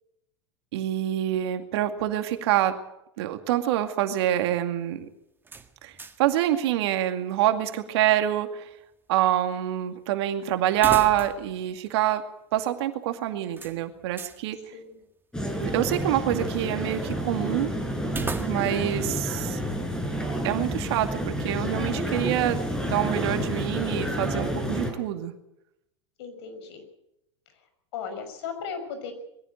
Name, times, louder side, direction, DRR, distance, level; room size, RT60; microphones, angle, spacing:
voice 1, 0.7-2.8 3.2-5.1 5.8-5.9 6.2-8.7 9.1-12.2 12.5-14.6 15.6-17.7 18.4-19.6 20.4-25.3, right 12 dB, 65° right, 7 dB, 2.3 m, -26 dB
sound 1, 5.4-6.3 6.6-6.7 10.7-11.6 11.9-12.0 13.6-14.4 18.1-18.9, right 4 dB, 15° right, 1.8 m, -36 dB
voice 2, 14.7-15.0 26.2-26.8 27.5-27.6 27.9-29.1, left 6 dB, 65° left, 8 dB, 6.0 m, -36 dB
sound 2, 15.3-24.9, equal, 5° left, 5.5 m, -29 dB
21.5 x 15.5 x 8.1 m, 0.82 s
hypercardioid pair, 95°, 15 cm